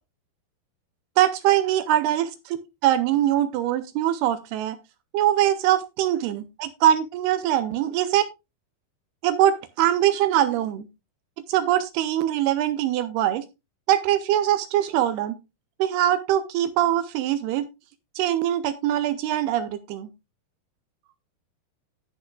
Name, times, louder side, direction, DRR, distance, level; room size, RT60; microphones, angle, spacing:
voice 1, 1.2-2.6 2.8-4.8 5.1-8.2 9.2-10.9 11.5-13.4 13.9-15.4 15.8-17.7 18.2-20.1, right 12 dB, 80° right, 11 dB, 2.5 m, -22 dB
16.5 x 6.1 x 2.3 m, 0.24 s
omnidirectional pair, 4.9 m